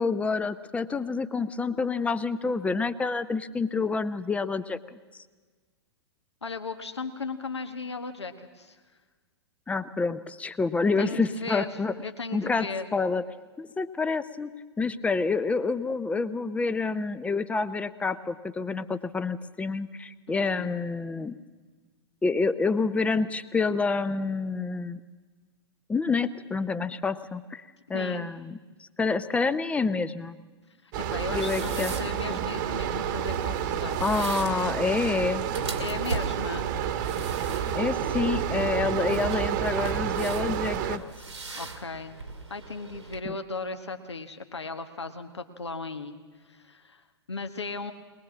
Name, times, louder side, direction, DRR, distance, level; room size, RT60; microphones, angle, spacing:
voice 1, 0.0-4.8 9.7-11.9 12.3-12.7 12.9-13.2 13.6-21.4 22.2-25.0 25.9-27.6 27.9-28.6 29.0-30.4 31.3-31.9 32.3-32.4 34.0-35.5 37.7-41.0 43.3-43.4, left 4 dB, 10° left, 13 dB, 0.6 m, -28 dB
voice 2, 6.4-8.8 11.0-12.9 20.3-20.7 27.9-28.3 30.8-34.2 35.8-36.7 41.5-42.2 42.5-47.9, left 4 dB, 75° left, 7 dB, 1.3 m, -37 dB
sound 1, 30.9-41.0, right 9 dB, 45° right, 1.3 m, -29 dB
sound 2, 31.0-43.2, right 3 dB, 80° right, 2.1 m, -40 dB
21.5 x 21.0 x 7.3 m, 1.4 s
figure-of-eight pair, 105°, 14 cm